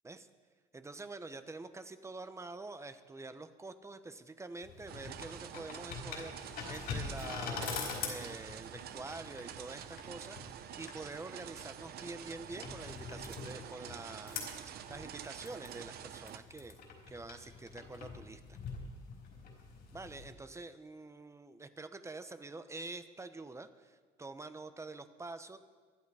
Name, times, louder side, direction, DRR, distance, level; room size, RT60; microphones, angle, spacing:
voice 1, 0.7-16.8 17.1-18.6 19.9-25.6, right 3 dB, 15° right, 10 dB, 1.0 m, -47 dB
sound 1, 4.6-20.3, left 5 dB, 70° left, 4.7 m, -45 dB
sound 2, 4.9-16.4, right 10 dB, 65° right, 0.9 m, -48 dB
24.0 x 11.5 x 4.9 m, 1.5 s
cardioid pair, 110°, 17 cm